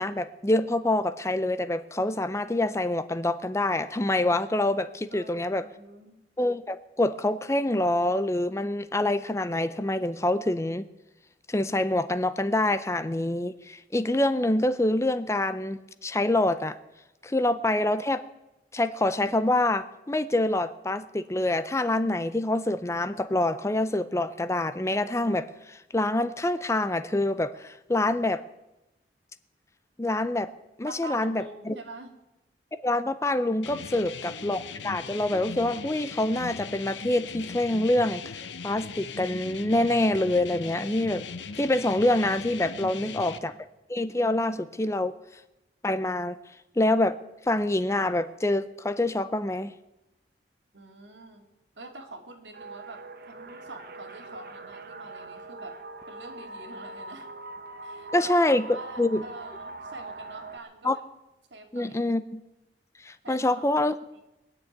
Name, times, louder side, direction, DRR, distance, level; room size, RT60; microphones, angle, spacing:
voice 1, 0.0-5.7 6.4-10.9 11.5-16.8 17.2-18.2 18.7-28.4 30.0-30.5 30.8-31.7 32.7-41.2 41.6-43.5 43.9-45.1 45.8-46.4 46.8-47.2 47.5-49.7 58.1-59.2 60.8-61.0 61.7-62.4 63.0-63.9, left 1 dB, 15° left, 13 dB, 0.5 m, -26 dB
voice 2, 5.1-6.2 30.8-32.1 33.9-34.1 43.0-43.6 50.7-51.5 51.8-55.8 56.1-57.3 57.8-61.0 61.5-62.1 63.2-63.6 64.1-64.2, right 2 dB, 85° right, 4 dB, 2.3 m, -45 dB
sound 1, 33.6-43.4, left 5 dB, 90° left, 0.8 m, -39 dB
sound 2, 52.5-60.6, right 2 dB, 55° right, 1.2 m, -42 dB
20.5 x 6.9 x 9.2 m, 0.96 s
head